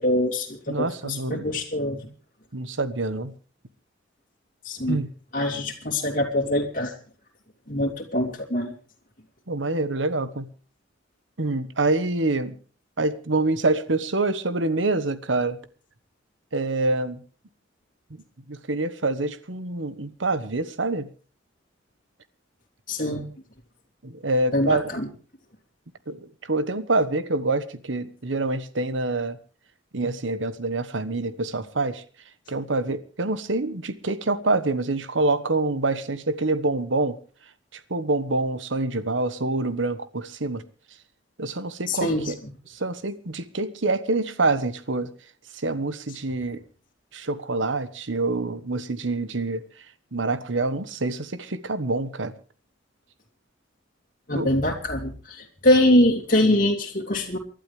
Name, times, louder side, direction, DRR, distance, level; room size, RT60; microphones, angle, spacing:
voice 1, 0.0-2.1 4.6-5.0 5.3-6.9 7.7-8.7 22.9-23.3 24.5-25.1 41.9-42.3 54.3-57.4, left 1 dB, 50° left, 2.9 m, -23 dB
voice 2, 0.7-1.5 2.5-3.3 4.9-5.1 9.5-10.5 11.4-12.5 13.0-15.6 16.5-17.2 18.5-21.1 24.0-24.9 26.1-29.4 29.9-32.0 32.5-37.2 37.7-40.6 41.4-42.4 42.7-45.1 45.6-46.6 47.1-49.6 50.1-52.3 54.3-54.5, right 2 dB, 85° right, 1.3 m, -26 dB
28.5 x 11.5 x 3.3 m
head